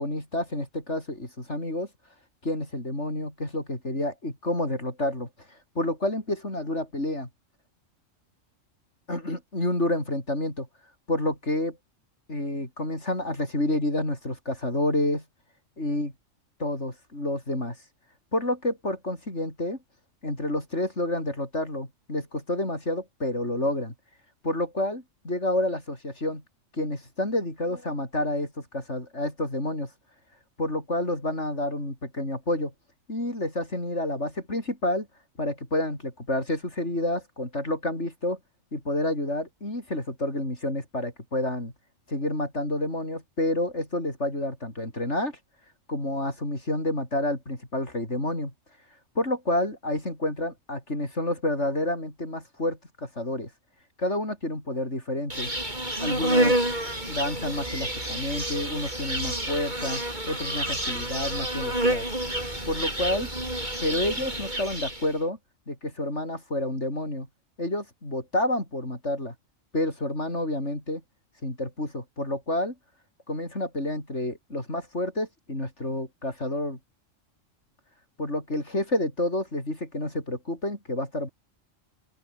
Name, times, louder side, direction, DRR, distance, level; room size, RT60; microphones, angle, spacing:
voice 1, 0.0-1.9 2.4-7.3 9.1-10.7 11.1-11.8 12.3-15.2 15.8-16.1 16.6-17.8 18.3-19.8 20.2-23.9 24.4-26.4 26.7-29.9 30.6-32.7 33.1-35.1 35.4-38.4 38.7-41.7 42.1-45.4 45.9-48.5 49.2-53.5 54.0-55.5 56.0-56.6 57.1-60.0 60.3-62.1 62.7-63.3 63.8-65.4 65.7-67.3 67.6-69.3 69.7-71.0 71.4-72.7 73.3-76.8 78.2-81.3, left 1 dB, 60° left, 7.2 m, -29 dB
Insect, 55.3-65.1, right 1 dB, 35° right, 7.8 m, -29 dB
open air
omnidirectional pair, 1.3 m